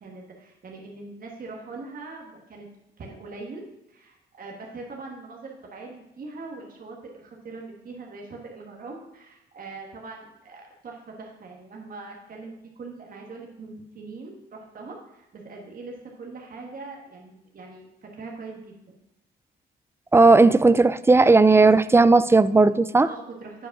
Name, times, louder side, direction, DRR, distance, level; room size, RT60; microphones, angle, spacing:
voice 1, 0.0-2.7 3.0-18.7 23.0-23.7, right 3 dB, 45° right, 0 dB, 1.5 m, -41 dB
voice 2, 20.1-23.1, right 3 dB, 10° right, 15 dB, 0.3 m, -16 dB
7.8 x 5.1 x 5.9 m, 0.88 s
cardioid pair, 90°, 20 cm